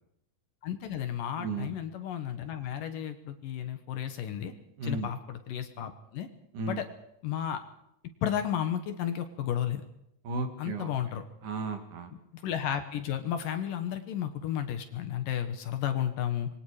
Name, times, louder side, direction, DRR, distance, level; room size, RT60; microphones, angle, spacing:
voice 1, 0.6-4.5 4.8-6.3 6.7-6.9 7.2-7.6 8.2-9.8 10.6-11.2 12.3-16.5, left 10 dB, 65° left, 8 dB, 2.7 m, -33 dB
voice 2, 1.4-1.7 4.8-5.1 6.5-6.8 10.2-10.9 11.4-12.1, right 3 dB, 60° right, 5 dB, 3.4 m, -34 dB
27.0 x 22.5 x 4.9 m, 0.80 s
omnidirectional pair, 4.5 m